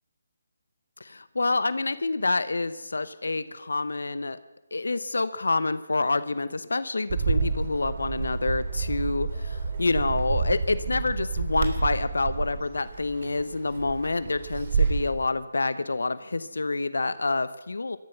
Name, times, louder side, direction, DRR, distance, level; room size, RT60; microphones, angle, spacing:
voice 1, 1.0-4.4 4.7-18.0, left 3 dB, 80° left, 14 dB, 0.9 m, -27 dB
Bird, 7.1-15.1, right 5 dB, 45° right, 3.1 m, -29 dB
18.0 x 13.5 x 5.8 m, 1.1 s
figure-of-eight pair, 155°, 0 cm